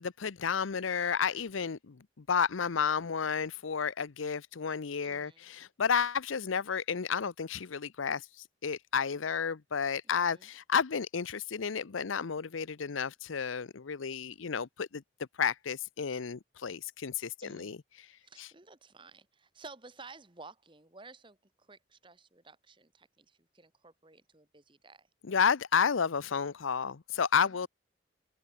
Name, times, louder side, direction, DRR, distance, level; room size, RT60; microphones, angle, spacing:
voice 1, 0.0-8.2 8.6-15.0 15.4-17.8 18.4-18.5 25.2-27.7, left 6 dB, 85° left, 0.7 m, -31 dB
voice 2, 5.0-5.5 10.0-10.5 17.4-17.8 18.2-25.1 27.5-27.7, right 3 dB, 25° right, 1.4 m, -54 dB
head